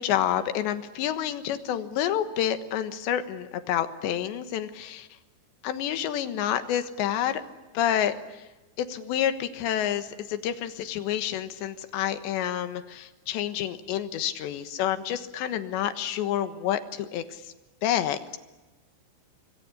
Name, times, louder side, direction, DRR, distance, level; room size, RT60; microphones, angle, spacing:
voice 1, 0.0-5.1 5.6-7.4 7.8-8.4 8.8-17.5 17.8-18.4, left 10 dB, 75° left, 10 dB, 3.5 m, -29 dB
26.0 x 22.0 x 10.0 m, 1.1 s
omnidirectional pair, 5.4 m